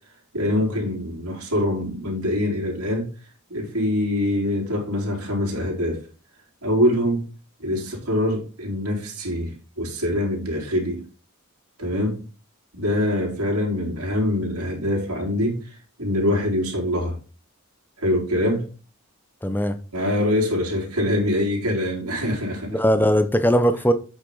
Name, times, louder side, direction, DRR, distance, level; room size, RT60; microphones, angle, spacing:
voice 1, 0.3-3.1 3.5-6.1 6.6-7.2 7.6-11.0 11.8-12.2 12.7-17.2 18.0-18.7 19.9-22.8, left 1 dB, 90° right, 3.8 m, -24 dB
voice 2, 19.4-19.8 22.7-23.9, equal, 10° left, 0.7 m, -19 dB
8.1 x 6.4 x 3.9 m
head